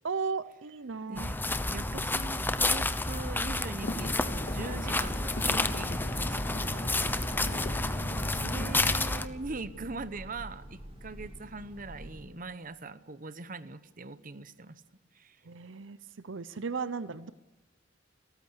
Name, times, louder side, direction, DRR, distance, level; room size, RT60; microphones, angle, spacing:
voice 1, 0.0-1.3 8.0-8.5 15.4-17.3, right 5 dB, 80° right, 15 dB, 0.7 m, -36 dB
voice 2, 1.1-7.8 8.1-14.8 15.1-15.4, right 3 dB, 45° right, 14 dB, 1.0 m, -42 dB
sound 1, 1.2-9.3, left 2 dB, 10° left, 0.9 m, -30 dB
sound 2, 3.8-8.9, left 1 dB, 50° left, 2.1 m, -40 dB
Train, 6.8-12.6, equal, 30° right, 4.0 m, -47 dB
30.0 x 14.0 x 8.1 m, 1.1 s
head